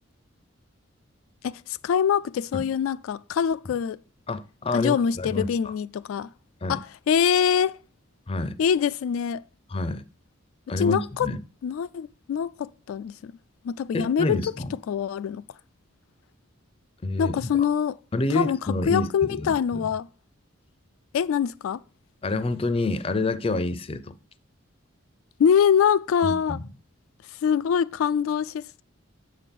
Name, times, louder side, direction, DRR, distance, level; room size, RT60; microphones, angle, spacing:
voice 1, 1.4-4.0 4.7-6.3 6.7-7.8 8.6-9.4 10.8-11.3 11.6-13.3 13.6-14.4 14.9-15.4 17.2-18.0 18.3-20.1 21.1-21.8 25.4-26.6 27.3-28.8, left 7 dB, 90° left, 0.3 m, -24 dB
voice 2, 4.3-5.5 6.6-6.8 8.3-8.6 9.7-10.0 10.7-11.4 13.9-14.7 17.0-17.4 18.1-19.1 19.4-19.6 22.2-24.1 26.2-26.6, left 2 dB, 30° left, 0.4 m, -28 dB
7.5 x 5.7 x 5.2 m
head